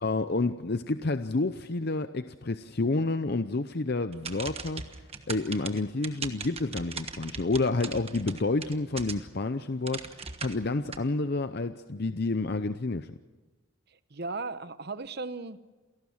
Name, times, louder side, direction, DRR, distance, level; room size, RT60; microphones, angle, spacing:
voice 1, 0.0-4.9 5.3-13.1, left 3 dB, 50° left, 10 dB, 0.6 m, -29 dB
sound 1, 4.1-9.4 9.8-11.0, right 5 dB, 30° right, 1.3 m, -39 dB
voice 2, 13.9-15.6, right 3 dB, 50° right, 13 dB, 1.0 m, -36 dB
28.0 x 18.0 x 7.3 m, 1.3 s
head